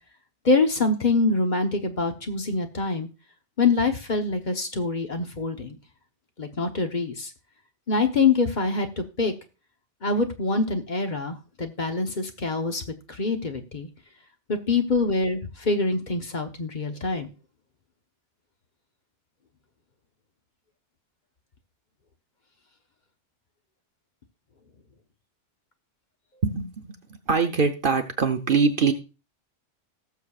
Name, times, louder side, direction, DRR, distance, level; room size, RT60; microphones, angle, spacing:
voice 1, 0.4-3.1 3.6-5.8 6.4-7.3 7.9-9.3 10.0-12.8 13.1-13.9 14.5-17.3, left 3 dB, 40° left, 6 dB, 1.1 m, -25 dB
voice 2, 26.4-26.9 27.3-28.9, right 5 dB, 50° right, 6 dB, 0.9 m, -23 dB
19.0 x 6.8 x 2.4 m, 0.31 s
omnidirectional pair, 1.2 m